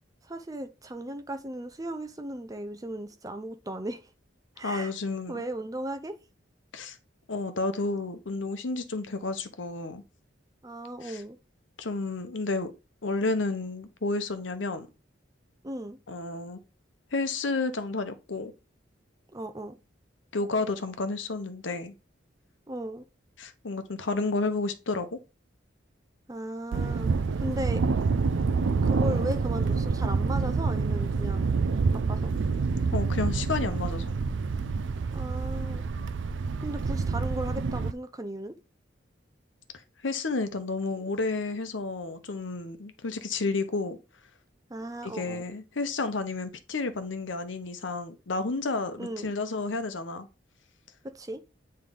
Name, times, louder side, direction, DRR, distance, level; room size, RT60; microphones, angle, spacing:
voice 1, 0.3-4.1 4.6-4.9 5.3-6.2 10.6-11.4 15.6-16.0 19.3-19.8 22.7-23.0 26.3-27.1 27.4-27.8 28.8-31.5 31.9-32.3 35.1-35.8 36.6-38.6 44.7-45.4 49.0-49.3 51.1-51.4, right 1 dB, 20° right, 0.6 m, -36 dB
voice 2, 4.6-5.4 6.7-7.0 7.3-10.0 11.0-11.2 11.8-12.7 13.0-14.9 16.1-16.6 17.1-18.5 20.3-21.9 23.4-25.2 32.9-34.1 40.0-44.0 45.0-50.3, left 3 dB, 80° left, 0.9 m, -31 dB
Thunder, 26.7-37.9, right 4 dB, 75° right, 0.4 m, -27 dB
9.0 x 3.2 x 3.8 m
head